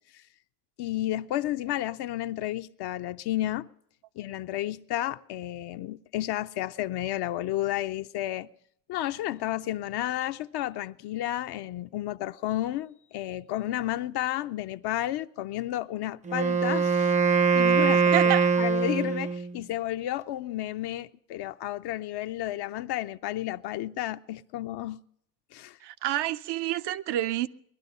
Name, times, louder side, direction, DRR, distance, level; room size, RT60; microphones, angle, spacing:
voice 1, 0.8-3.7 4.2-8.5 8.9-25.0 25.5-25.8, left 14 dB, 65° left, 0.5 m, -32 dB
Wind instrument woodwind instrument, 16.3-19.6, right 5 dB, 20° right, 0.5 m, -23 dB
voice 2, 18.1-18.4 25.8-27.5, right 13 dB, 70° right, 0.6 m, -28 dB
20.0 x 11.5 x 5.4 m
supercardioid pair, 75°, 42 cm